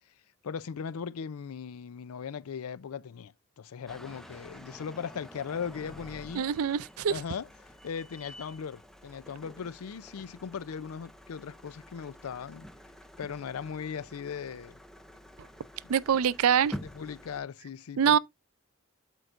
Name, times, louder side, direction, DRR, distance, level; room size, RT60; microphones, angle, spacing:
voice 1, 0.4-6.5 7.1-7.5 7.8-12.7 13.2-14.8 15.8-15.9 16.8-18.2, left 6 dB, 85° left, 0.4 m, -38 dB
sound 1, 3.9-17.4, equal, ahead, 0.5 m, -48 dB
voice 2, 6.3-7.1 15.9-16.7 18.0-18.2, right 7 dB, 85° right, 0.4 m, -24 dB
12.5 x 4.6 x 2.5 m
head